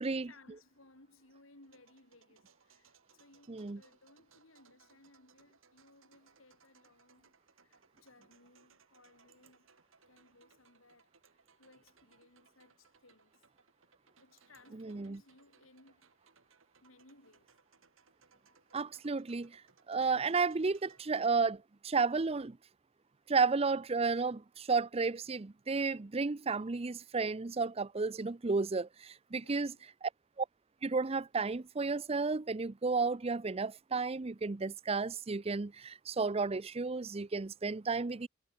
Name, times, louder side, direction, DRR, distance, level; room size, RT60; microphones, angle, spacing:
voice 1, 0.0-13.5 14.2-16.3 16.8-17.5 29.3-29.9, left 2 dB, 80° left, 5.5 m, -63 dB
sound 1, 1.6-21.3, right 5 dB, 75° right, 6.3 m, -68 dB
voice 2, 3.5-3.8 14.8-15.2 18.7-19.6 19.9-22.6 23.3-29.7 30.4-30.5 30.8-38.3, right 4 dB, 30° right, 0.5 m, -32 dB
head